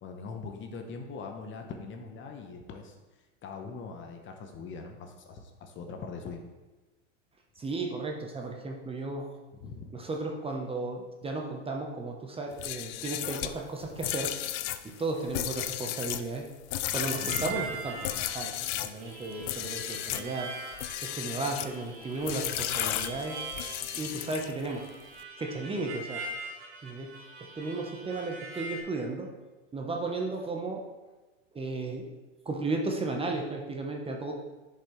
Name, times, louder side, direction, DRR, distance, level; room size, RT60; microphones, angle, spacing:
voice 1, 0.0-3.0 3.4-6.4 9.6-9.9 16.9-17.7, left 4 dB, 30° left, 4 dB, 1.0 m, -42 dB
voice 2, 7.6-9.3 9.9-14.3 14.8-16.5 16.9-20.5 21.0-23.4 24.0-24.8 25.4-26.3 26.8-27.2 27.6-29.3 29.7-30.9 31.5-32.1 32.4-34.3, right 3 dB, 15° right, 1 dB, 0.9 m, -34 dB
sound 1, 12.5-19.0 19.4-20.3 20.7-21.8 22.3-24.7, left 13 dB, 45° left, 0.5 m, -34 dB
Harmonica, 16.9-28.8, right 3 dB, 65° right, 2.2 m, -42 dB
10.0 x 5.6 x 3.2 m, 1.2 s
hypercardioid pair, 110°, 37 cm